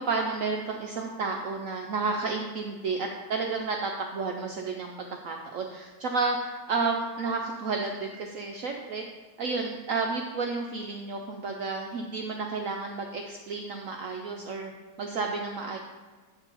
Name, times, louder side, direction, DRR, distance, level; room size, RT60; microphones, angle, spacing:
voice 1, 0.1-4.9 5.2-9.0 9.4-14.7 15.0-15.8, right 4 dB, 70° right, 2 dB, 0.8 m, -31 dB
7.8 x 4.6 x 5.5 m, 1.4 s
omnidirectional pair, 1.9 m